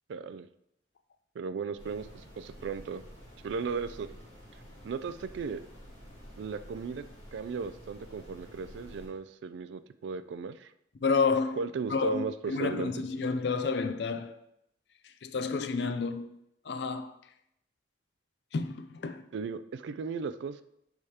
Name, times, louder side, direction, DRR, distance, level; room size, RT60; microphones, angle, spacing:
voice 1, 0.1-0.5 1.4-3.0 3.4-4.1 4.8-5.6 6.4-7.0 7.3-10.7 11.6-12.9 19.3-20.6, right 5 dB, 70° right, 0.3 m, -36 dB
sound 1, 1.8-9.1, equal, 30° left, 2.1 m, -50 dB
voice 2, 11.0-11.6 11.9-14.3 15.2-16.3 16.7-17.1 18.5-19.2, left 4 dB, 60° left, 0.4 m, -30 dB
9.6 x 3.6 x 2.8 m
head